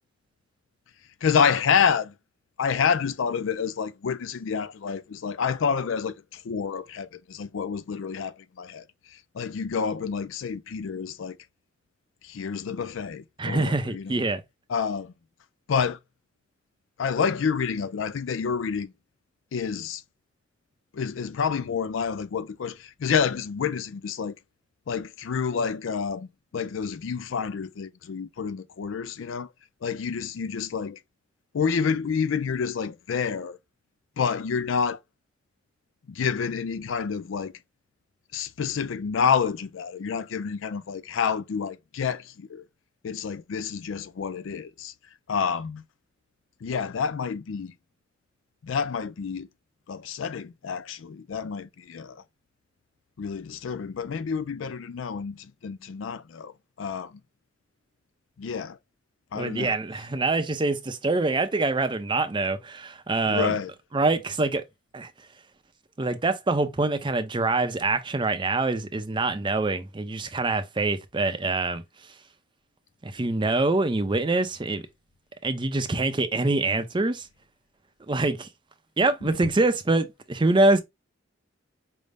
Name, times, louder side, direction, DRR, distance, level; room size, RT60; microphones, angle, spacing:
voice 1, 1.2-2.1 2.6-8.8 9.3-11.4 12.2-14.2 14.7-15.1 15.7-16.0 17.0-18.9 19.5-20.0 20.9-24.3 24.9-29.5 29.8-31.0 31.5-33.6 34.2-35.0 36.1-37.5 38.3-42.6 43.0-44.9 45.3-45.8 46.6-47.7 48.6-49.5 49.9-52.2 53.2-56.5 56.8-57.2 58.4-58.8 59.3-59.8 63.2-63.7 79.2-79.4, left 6 dB, 75° left, 0.4 m, -28 dB
voice 2, 13.4-14.4 59.3-63.6 63.9-64.6 64.9-65.1 66.0-71.8 73.0-74.8 75.4-77.3 78.1-78.5 79.0-80.8, right 2 dB, 25° right, 0.5 m, -25 dB
5.2 x 2.0 x 3.3 m
head